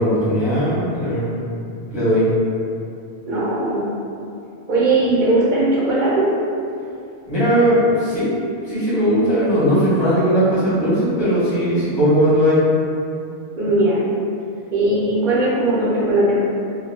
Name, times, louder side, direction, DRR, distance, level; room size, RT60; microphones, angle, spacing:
voice 1, 0.0-1.3 1.9-2.2 7.3-8.3 8.7-12.6, equal, 25° left, -11 dB, 0.9 m, -18 dB
voice 2, 3.3-3.8 4.7-6.3 13.6-14.0 14.7-16.4, right 2 dB, 50° right, -8 dB, 0.8 m, -18 dB
2.2 x 2.1 x 3.2 m, 2.6 s
omnidirectional pair, 1.1 m